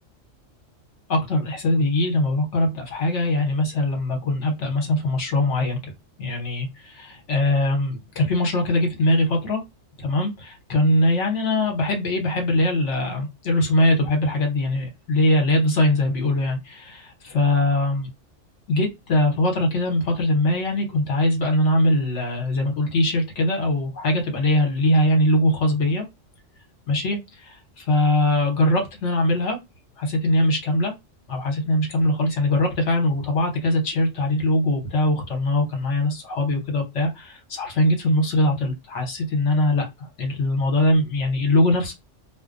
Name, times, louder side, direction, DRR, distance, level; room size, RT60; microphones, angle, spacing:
voice 1, 1.1-5.9 6.2-9.6 10.0-18.1 18.7-26.0 26.9-29.6 30.0-30.9 31.3-41.9, left 1 dB, 70° left, 1.2 m, -22 dB
2.5 x 2.1 x 2.5 m
omnidirectional pair, 1.3 m